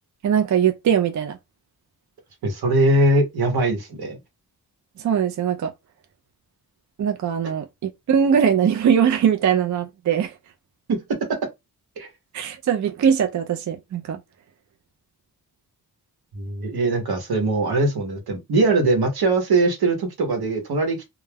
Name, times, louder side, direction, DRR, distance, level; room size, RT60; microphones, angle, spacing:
voice 1, 0.2-1.4 5.0-5.7 7.0-10.4 12.3-14.2, right 8 dB, 50° right, 0.4 m, -21 dB
voice 2, 2.4-4.2 10.9-11.0 12.0-12.1 16.3-21.1, right 2 dB, 75° right, 1.0 m, -21 dB
2.2 x 2.2 x 3.3 m
cardioid pair, 70°, 38 cm